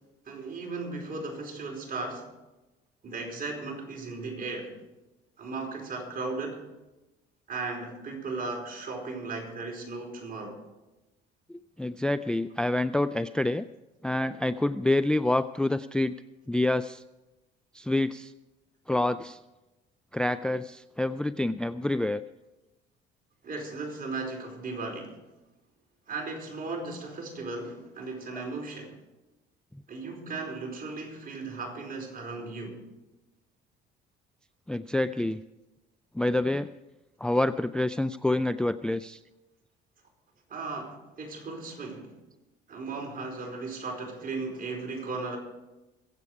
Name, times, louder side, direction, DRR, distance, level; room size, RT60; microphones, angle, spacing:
voice 1, 0.2-2.3 3.0-4.7 5.4-6.6 7.5-10.6 23.4-25.2 26.1-28.9 29.9-32.8 40.5-42.1 42.7-45.4, right 3 dB, 45° right, 1 dB, 4.7 m, -36 dB
voice 2, 11.8-13.6 14.0-16.1 16.5-17.0 17.7-18.3 18.9-19.4 20.1-22.2 34.7-35.4 36.2-36.7 37.2-39.2, left 1 dB, 5° left, 14 dB, 0.4 m, -27 dB
22.5 x 8.3 x 4.8 m, 1.0 s
supercardioid pair, 75°, 21 cm